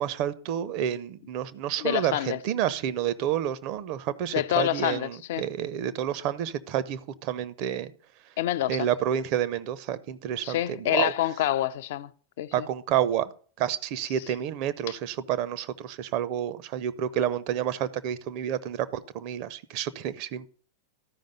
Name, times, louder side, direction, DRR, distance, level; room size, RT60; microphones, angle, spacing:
voice 1, 0.0-7.9 8.7-11.1 12.5-13.3 13.6-20.5, right 10 dB, 45° right, 0.7 m, -29 dB
voice 2, 1.8-2.4 4.3-5.5 8.4-8.9 10.4-12.1 12.4-12.7, left 13 dB, 55° left, 0.4 m, -27 dB
13.0 x 5.3 x 5.3 m
figure-of-eight pair, 90°, 0 cm